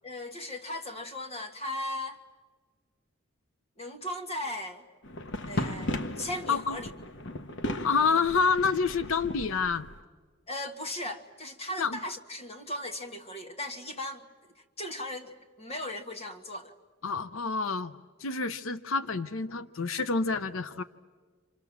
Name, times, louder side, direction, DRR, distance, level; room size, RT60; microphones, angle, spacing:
voice 1, 0.0-2.2 3.8-4.8 5.4-6.9 10.5-14.2 14.8-16.7, left 1 dB, 30° left, 4 dB, 1.6 m, -37 dB
sound 1, 5.0-10.0, left 1 dB, 60° left, 1.1 m, -36 dB
voice 2, 6.5-6.8 7.8-9.9 11.8-12.0 17.0-17.9 18.2-20.8, left 5 dB, 85° left, 13 dB, 0.7 m, -28 dB
30.0 x 26.5 x 7.2 m, 1.5 s
head